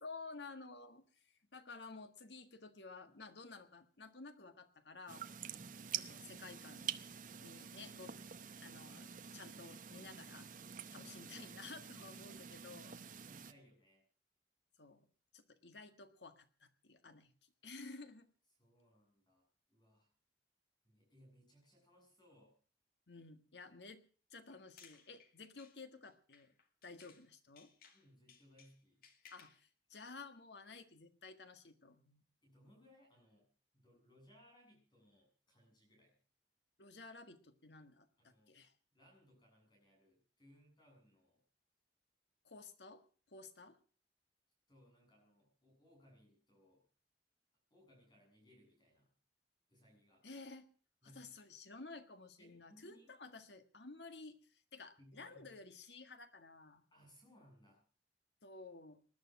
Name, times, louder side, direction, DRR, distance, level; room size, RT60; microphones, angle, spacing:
voice 1, 0.0-5.2 5.9-8.1 8.6-10.5 10.9-13.0 14.8-15.1 15.3-17.3 17.6-18.3 23.1-24.0 24.3-26.5 26.8-27.7 29.3-32.2 36.8-38.7 42.4-43.0 43.3-43.8 50.2-50.7 51.0-56.8 58.4-59.0, left 3 dB, 75° left, 9 dB, 1.7 m, -53 dB
sound 1, 5.1-13.5, right 8 dB, 50° right, 0.9 m, -48 dB
voice 2, 10.8-11.9 13.2-14.0 18.6-20.1 20.8-22.5 27.9-29.0 32.4-33.5 33.7-36.2 38.2-38.6 38.9-41.4 44.7-46.8 47.7-49.1 49.7-50.2 51.0-51.4 52.4-53.1 55.0-55.5 56.9-57.8, equal, 25° left, 0 dB, 7.7 m, -66 dB
sound 2, 24.5-27.3 27.6-29.6, left 6 dB, 55° left, 2.2 m, -64 dB
20.0 x 11.5 x 6.0 m, 0.41 s
head